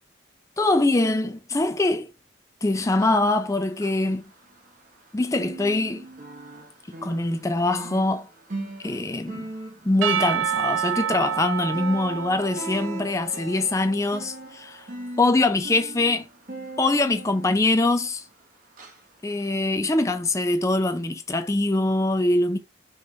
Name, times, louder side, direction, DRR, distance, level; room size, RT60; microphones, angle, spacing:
voice 1, 0.6-2.1 2.6-4.3 5.1-6.1 7.0-8.3 8.8-9.5 9.8-14.8 15.2-16.3 16.8-18.2 19.2-22.6, left 2 dB, 15° left, 0.4 m, -23 dB
sound 1, 2.9-5.0 5.3-18.4 18.8-19.0 19.5-19.6, right 2 dB, 40° right, 0.9 m, -40 dB
Percussion / Church bell, 10.0-14.3, right 9 dB, 85° right, 0.4 m, -29 dB
5.6 x 3.1 x 2.7 m
head